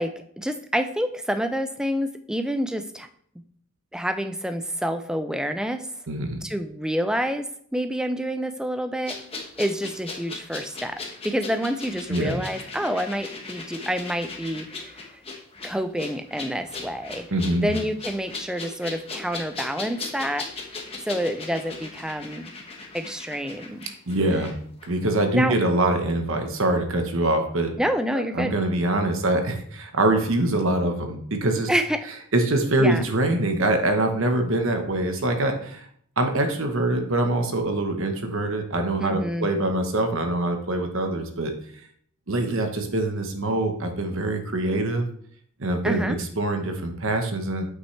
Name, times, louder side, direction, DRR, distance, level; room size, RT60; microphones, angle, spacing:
voice 1, 0.0-3.1 3.9-5.9 6.4-9.2 9.6-15.2 15.6-17.3 17.6-20.4 21.0-22.6 22.9-23.8 25.3-25.6 27.8-28.5 31.7-32.0 32.8-33.1 39.0-39.5 45.8-46.2, equal, 5° right, 8 dB, 0.4 m, -28 dB
voice 2, 6.1-6.4 12.1-12.4 17.3-17.7 24.1-24.6 24.8-27.7 28.1-31.7 32.3-35.9 36.2-41.5 42.3-45.1 45.6-47.6, right 1 dB, 60° right, 5 dB, 1.1 m, -24 dB
sound 1, 9.1-24.5 24.8-24.9, left 3 dB, 25° left, 1.2 m, -38 dB
8.2 x 6.1 x 3.3 m, 0.63 s
head